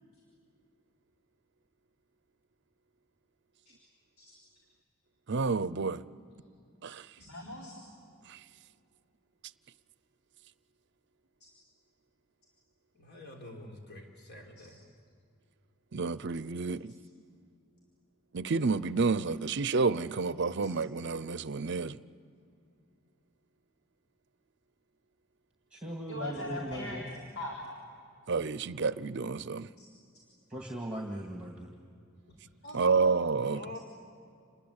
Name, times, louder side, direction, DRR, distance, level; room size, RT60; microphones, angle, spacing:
voice 1, 5.3-6.0 6.8-7.1 8.3-8.4 15.9-16.9 18.3-22.0 28.3-29.7 32.7-33.6, right 4 dB, 55° right, 0.6 m, -29 dB
voice 2, 7.2-7.8 11.4-11.5 16.9-17.0 26.1-27.5 29.8-29.9 32.6-33.1 33.4-33.6, left 1 dB, 85° left, 4.1 m, -41 dB
voice 3, 12.9-14.8 33.4-33.8, left 1 dB, 50° left, 3.7 m, -46 dB
voice 4, 25.7-27.0 30.5-31.7, right 1 dB, 5° right, 2.0 m, -39 dB
28.0 x 20.5 x 8.1 m
head